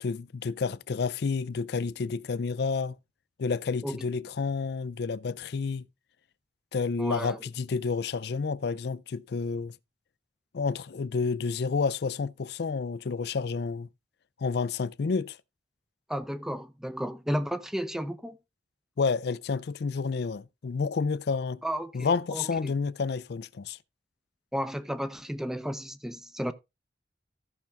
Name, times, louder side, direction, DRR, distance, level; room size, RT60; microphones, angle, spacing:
voice 1, 0.0-3.0 3.4-5.9 6.7-9.7 10.5-13.9 14.4-15.4 19.0-21.6 21.9-23.8, left 4 dB, 60° left, 0.4 m, -30 dB
voice 2, 7.0-7.4 16.1-18.4 21.6-22.7 24.5-26.5, equal, 5° right, 0.7 m, -33 dB
14.5 x 5.9 x 3.4 m
head